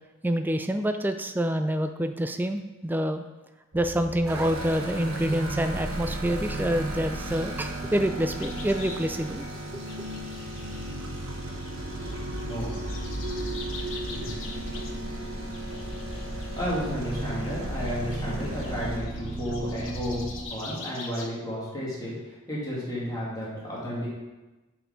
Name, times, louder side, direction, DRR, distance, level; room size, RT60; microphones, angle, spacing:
voice 1, 0.2-3.2 3.7-9.5 9.7-9.8, right 1 dB, 10° right, 8 dB, 0.3 m, -27 dB
sound 1, 3.7-20.4, right 1 dB, 45° right, 0.9 m, -35 dB
sound 2, 4.3-19.0, right 1 dB, 80° right, 1.3 m, -40 dB
sound 3, 8.3-21.2, left 4 dB, 65° left, 1.1 m, -45 dB
voice 2, 11.8-12.8 14.1-14.6 16.3-24.1, equal, 15° left, -7 dB, 2.3 m, -33 dB
7.8 x 5.0 x 5.0 m, 1.1 s
head